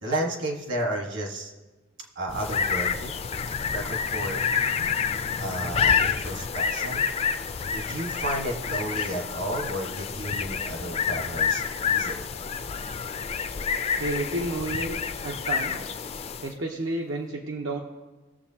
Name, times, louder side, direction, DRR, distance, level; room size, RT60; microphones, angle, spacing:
voice 1, 0.0-1.5 2.2-3.1 3.7-4.4 5.4-7.0 7.7-12.3, right 1 dB, 65° right, 1 dB, 1.6 m, -32 dB
sound 1, 2.3-16.6, left 6 dB, 30° left, 0.4 m, -28 dB
voice 2, 14.0-15.0 15.2-16.0 16.4-17.8, right 2 dB, 85° right, 0 dB, 1.0 m, -31 dB
20.5 x 7.2 x 2.9 m, 1.2 s
head